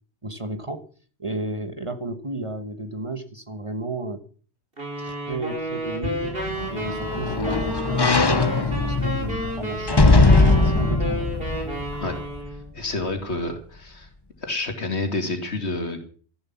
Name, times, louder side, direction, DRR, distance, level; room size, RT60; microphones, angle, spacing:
voice 1, 0.2-0.9 1.2-4.2 5.0-6.4 6.7-10.1 10.6-11.3, right 2 dB, 30° right, 10 dB, 1.2 m, -33 dB
sound 1, 4.8-12.7, equal, 55° right, 5.6 m, -32 dB
sound 2, 6.2-12.6 13.0-13.1, left 3 dB, 25° left, 1.0 m, -21 dB
sound 3, 6.3-12.4, equal, 40° left, 4.6 m, -44 dB
voice 2, 12.7-14.1 14.4-16.0, left 2 dB, 75° left, 6 dB, 2.8 m, -28 dB
14.0 x 11.0 x 7.1 m, 0.43 s
omnidirectional pair, 1.1 m